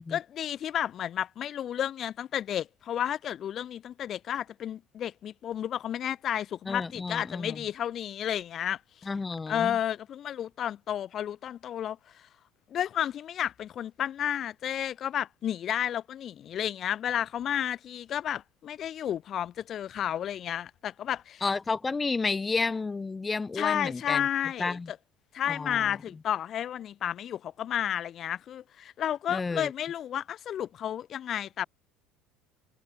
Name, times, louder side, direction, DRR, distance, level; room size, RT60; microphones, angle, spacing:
voice 1, 0.1-9.1 9.5-12.3 12.7-21.4 23.5-25.0 25.3-31.7, left 10 dB, 40° left, 2.9 m, -32 dB
voice 2, 6.7-7.6 9.1-9.8 21.4-24.3 24.6-24.9 25.5-26.0 29.3-29.7, left 4 dB, 20° left, 2.8 m, -31 dB
figure-of-eight pair, 60°, 0 cm